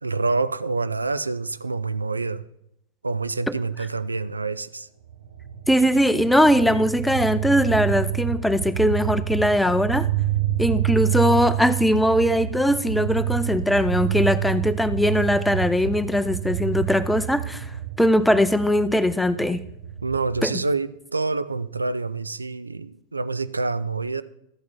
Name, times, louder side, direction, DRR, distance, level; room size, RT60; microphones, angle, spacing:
voice 1, 0.0-2.4 3.0-4.9 20.0-24.2, right 3 dB, 80° right, 16 dB, 0.3 m, -27 dB
sound 1, 5.1-20.5, right 11 dB, 65° right, 1.3 m, -28 dB
voice 2, 5.7-10.1 10.6-17.7 18.0-19.6 20.4-20.5, equal, 5° left, 13 dB, 0.5 m, -20 dB
12.5 x 8.4 x 4.3 m, 0.78 s
figure-of-eight pair, 90°, 0 cm